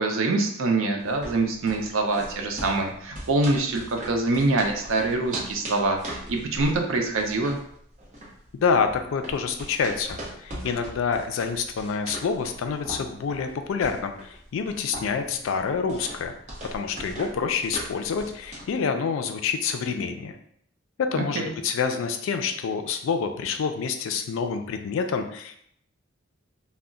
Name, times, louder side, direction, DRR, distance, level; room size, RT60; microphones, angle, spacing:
voice 1, 0.0-7.6 21.3-21.5, right 2 dB, 85° right, 3 dB, 0.5 m, -25 dB
sound 1, 1.0-18.8, right 1 dB, 35° right, 0.6 m, -40 dB
voice 2, 8.5-16.3 16.6-20.3 21.0-25.6, left 5 dB, 80° left, 7 dB, 0.3 m, -27 dB
2.2 x 2.0 x 3.7 m, 0.69 s
head